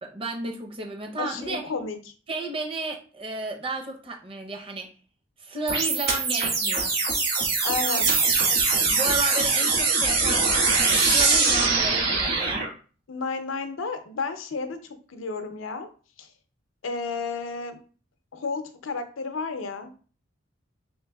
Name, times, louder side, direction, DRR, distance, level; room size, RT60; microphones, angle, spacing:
voice 1, 0.0-1.7 2.3-4.9 5.4-6.9 8.9-10.5 10.8-12.7, right 2 dB, 25° right, 2 dB, 0.6 m, -33 dB
voice 2, 1.2-2.1 7.6-8.1 13.1-14.8 15.1-15.9 16.2-16.3 16.8-17.8 18.3-19.9, left 4 dB, 90° left, 8 dB, 0.6 m, -32 dB
sound 1, 5.7-12.7, right 4 dB, 55° right, 1.5 m, -22 dB
4.3 x 3.3 x 2.3 m, 0.39 s
head